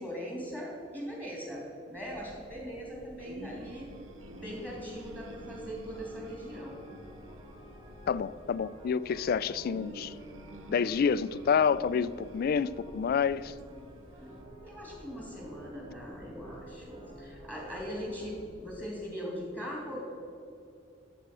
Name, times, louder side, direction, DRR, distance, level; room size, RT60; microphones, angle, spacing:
voice 1, 0.0-3.9 4.3-6.8 14.6-20.0, equal, 10° right, 3.1 m, -40 dB
sound 1, 1.9-18.7, equal, 70° right, 2.2 m, -54 dB
sound 2, 3.2-14.4, right 1 dB, 85° right, 1.0 m, -50 dB
sound 3, 3.5-18.4, right 1 dB, 30° right, 1.7 m, -53 dB
voice 2, 8.1-10.1 10.7-13.5, left 6 dB, 50° left, 0.3 m, -28 dB
13.0 x 7.9 x 6.1 m
head